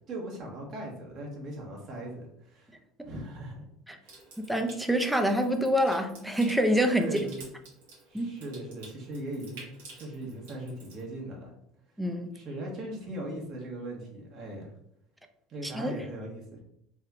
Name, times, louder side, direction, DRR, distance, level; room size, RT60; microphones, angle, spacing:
voice 1, 0.1-2.7 3.0-3.6 4.0-4.2 7.0-7.5 8.1-11.5 11.9-12.0 12.3-14.7 15.5-16.6, right 1 dB, 50° right, 1.3 m, -39 dB
Water tap faucet / Sink (filling or washing) / Trickle dribble, 4.0-11.0, right 3 dB, 80° right, 1.5 m, -51 dB
voice 2, 4.4-7.2 8.1-8.4 12.0-12.3 15.6-15.9, equal, 5° right, 0.5 m, -26 dB
3.5 x 2.2 x 3.6 m
hypercardioid pair, 85°, 0 cm